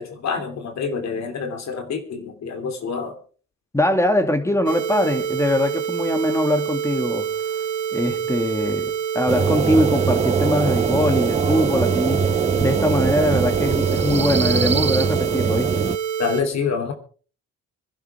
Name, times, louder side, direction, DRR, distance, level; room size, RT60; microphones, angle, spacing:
voice 1, 0.0-3.2 16.2-16.9, left 5 dB, 60° left, 3.2 m, -27 dB
voice 2, 3.7-7.3 7.9-12.3 12.6-15.7, left 1 dB, 10° left, 2.4 m, -22 dB
sound 1, 4.7-16.4, right 8 dB, 75° right, 3.0 m, -27 dB
sound 2, 9.3-16.0, right 5 dB, 20° right, 0.6 m, -22 dB
24.5 x 11.5 x 3.4 m
cardioid pair, 90°, 30 cm